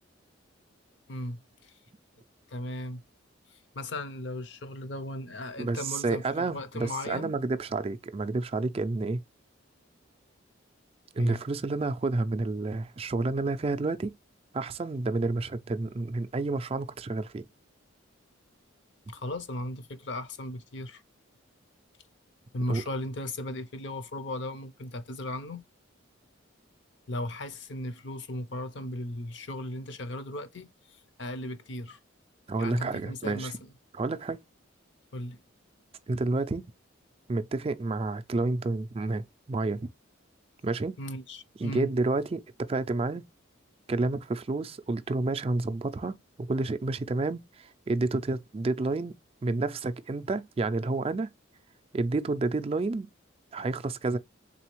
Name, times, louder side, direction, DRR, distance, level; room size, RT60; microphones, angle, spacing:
voice 1, 1.1-1.7 2.5-3.0 3.5-7.3 11.2-11.4 19.1-21.0 22.5-25.6 27.1-32.0 32.6-33.7 35.1-35.4 41.0-41.9, left 1 dB, 60° left, 0.6 m, -37 dB
voice 2, 5.6-9.2 11.2-14.1 14.5-17.4 22.7-22.8 32.5-33.5 33.9-34.4 36.1-36.7 37.3-39.9 40.6-41.0 41.6-43.2 43.9-49.1 49.4-51.3 51.9-53.1 53.5-54.2, right 3 dB, 30° right, 0.3 m, -30 dB
4.0 x 3.7 x 3.0 m
head